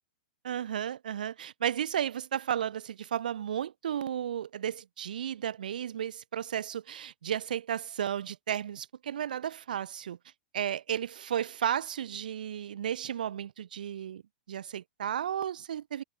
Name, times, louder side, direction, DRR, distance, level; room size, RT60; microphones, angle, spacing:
voice 1, 0.4-10.2 10.5-14.2 14.5-16.0, right 9 dB, 80° right, 1.2 m, -33 dB
hypercardioid pair, 120°, 5 cm